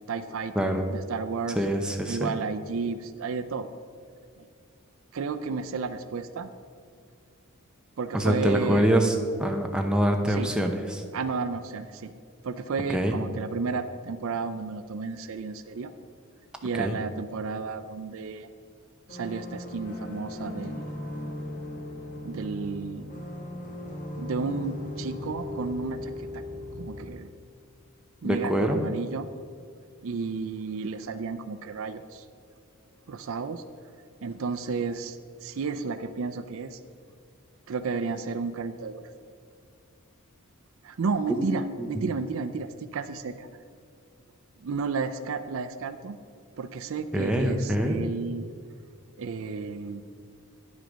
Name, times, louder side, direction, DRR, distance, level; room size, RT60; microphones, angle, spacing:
voice 1, 0.1-1.6 2.1-3.7 5.1-6.5 8.0-8.9 10.3-10.5 11.1-12.1 12.4-15.9 16.6-18.5 19.1-20.9 22.2-23.2 24.2-26.4 26.8-27.3 28.2-29.3 30.0-32.2 33.1-33.6 34.2-36.8 37.7-39.0 40.8-43.5 44.6-46.2 46.6-48.5 49.2-50.0, right 4 dB, 60° right, 10 dB, 0.4 m, -32 dB
voice 2, 1.6-2.3 8.1-9.1 9.4-11.0 12.9-13.1 16.8-17.0 28.2-28.8 41.4-42.0 47.1-48.0, equal, 5° right, 3 dB, 0.6 m, -25 dB
sound 1, 19.1-27.1, left 1 dB, 35° left, 1.4 m, -37 dB
9.8 x 6.4 x 5.1 m, 2.2 s
head